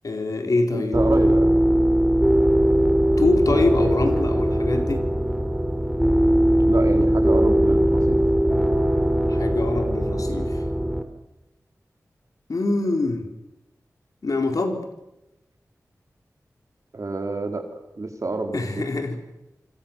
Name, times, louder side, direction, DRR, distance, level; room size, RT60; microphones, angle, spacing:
voice 1, 0.0-1.0 3.2-5.1 9.3-10.6 12.5-13.3 14.2-14.9 18.5-19.2, left 2 dB, 75° left, 5 dB, 4.2 m, -24 dB
voice 2, 0.7-1.8 6.7-8.2 16.9-17.7 18.0-18.8, right 3 dB, 60° right, 5 dB, 4.5 m, -28 dB
sound 1, 0.9-11.0, equal, 5° right, 3.6 m, -20 dB
27.0 x 25.5 x 7.4 m, 0.94 s
wide cardioid pair, 50°, 6 cm